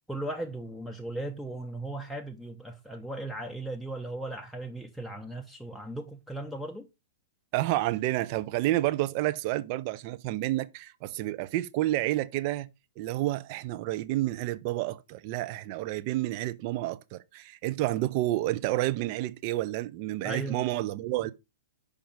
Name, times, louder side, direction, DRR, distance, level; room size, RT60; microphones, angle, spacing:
voice 1, 0.1-6.9 20.2-20.7, right 2 dB, ahead, 0.6 m, -37 dB
voice 2, 7.5-12.7 13.0-21.3, right 16 dB, 40° right, 0.5 m, -30 dB
5.1 x 5.1 x 4.6 m
figure-of-eight pair, 110°, 0 cm